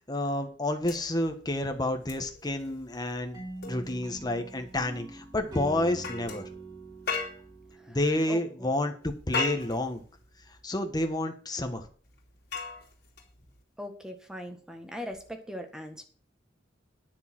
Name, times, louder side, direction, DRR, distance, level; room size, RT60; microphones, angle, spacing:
voice 1, 0.1-6.4 7.9-10.0 10.6-11.8, left 1 dB, 20° left, 5 dB, 1.4 m, -30 dB
sound 1, 0.8-7.7 9.0-10.6 12.1-13.6 15.1-15.3, left 4 dB, 60° left, 2.9 m, -39 dB
sound 2, 3.3-8.5, right 2 dB, 25° right, 3.4 m, -44 dB
voice 2, 8.3-8.7 13.8-16.0, equal, 5° right, 5 dB, 1.6 m, -40 dB
10.0 x 6.7 x 6.2 m, 0.43 s
head